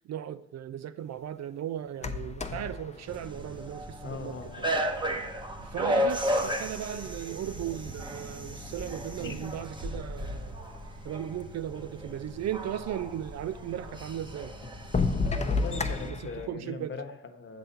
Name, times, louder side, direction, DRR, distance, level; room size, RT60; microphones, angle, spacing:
voice 1, 0.0-4.4 5.6-10.5 11.0-14.5 16.0-17.0, right 11 dB, 60° right, 0.5 m, -37 dB
sound 1, 1.9-4.2 5.3-5.4 6.0-7.1 7.8-8.6 9.4-9.5 9.7-9.8 10.4-10.5 10.8-11.5 13.2-13.3 13.9-14.0 14.6-16.5, left 4 dB, 20° left, 0.7 m, -32 dB
sound 2, 3.1-16.1, equal, 15° right, 1.0 m, -34 dB
voice 2, 4.0-4.8 9.2-9.5 15.5-17.6, left 4 dB, 40° left, 1.2 m, -40 dB
7.7 x 4.1 x 6.8 m
cardioid pair, 90°, 30 cm